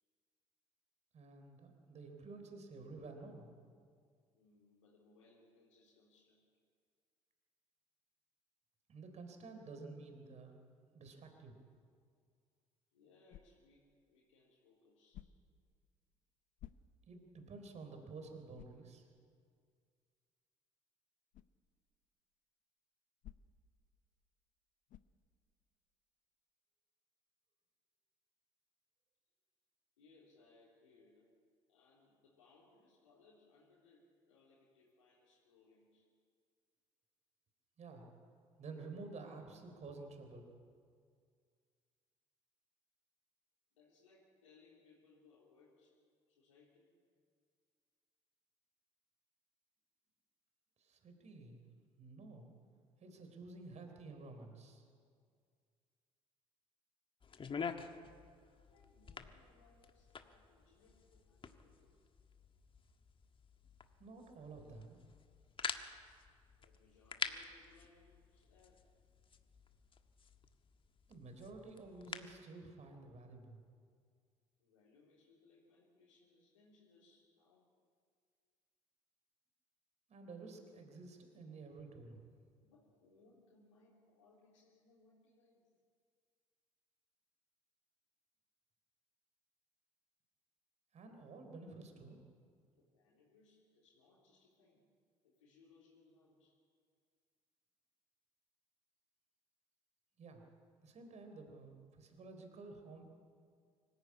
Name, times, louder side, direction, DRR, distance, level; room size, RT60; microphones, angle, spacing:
voice 1, 1.1-3.6 8.9-10.6 10.9-11.6 17.1-19.1 37.8-38.1 38.6-40.5 50.8-51.6 52.0-52.5 53.0-54.9 64.0-65.0 71.1-73.6 80.1-82.2 90.9-92.2 100.2-100.4 100.8-103.0, right 3 dB, 45° right, 5 dB, 4.0 m, -51 dB
voice 2, 4.3-6.5 12.9-15.3 30.0-31.3 31.7-36.1 43.7-46.0 46.3-46.9 58.7-62.0 66.6-68.8 74.6-77.7 82.6-85.7 92.8-94.9 95.2-96.6, left 3 dB, 80° left, -7 dB, 3.6 m, -68 dB
sound 1, 13.3-13.8 15.1-15.6 16.6-17.2 17.7-17.8 18.5-18.9 21.3-21.6 23.2-23.7 24.9-25.2, left 12 dB, 55° left, 0.9 m, -56 dB
sound 2, 57.2-72.4, left 5 dB, 30° left, 1.5 m, -48 dB
25.0 x 15.0 x 8.5 m, 2.1 s
figure-of-eight pair, 50°, 16 cm